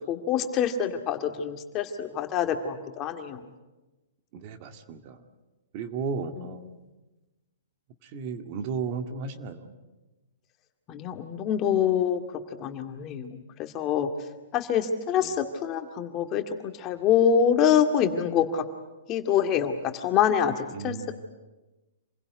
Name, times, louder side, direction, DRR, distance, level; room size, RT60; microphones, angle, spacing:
voice 1, 0.1-3.4 6.4-6.5 10.9-12.2 12.6-14.1 14.5-18.6 19.1-20.9, left 8 dB, 30° left, 6 dB, 2.1 m, -25 dB
voice 2, 4.3-5.2 5.7-6.7 8.0-9.7 15.2-15.3 20.7-21.2, right 5 dB, 45° right, 7 dB, 2.2 m, -34 dB
27.0 x 16.5 x 9.5 m, 1.1 s
hypercardioid pair, 140°, 0 cm